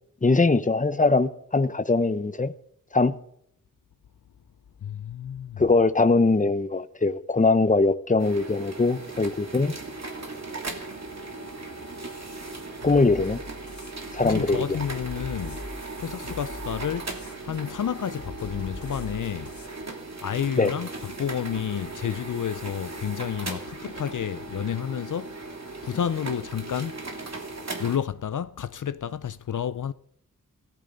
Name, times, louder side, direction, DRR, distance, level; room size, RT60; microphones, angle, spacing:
voice 1, 0.2-2.5 2.9-3.2 5.6-9.7 12.8-13.4 14.1-14.8 20.6-20.7, left 3 dB, 25° left, 0.9 m, -22 dB
voice 2, 4.8-5.6 14.2-15.6 16.0-17.1 17.4-19.5 20.2-20.9 21.1-25.4 25.8-27.0 27.8-29.9, left 8 dB, 65° left, 0.6 m, -30 dB
sound 1, 8.2-28.0, right 3 dB, 50° right, 2.9 m, -38 dB
sound 2, 12.8-19.7, left 2 dB, 85° left, 3.9 m, -43 dB
17.5 x 14.5 x 4.0 m
wide cardioid pair, 70°, 33 cm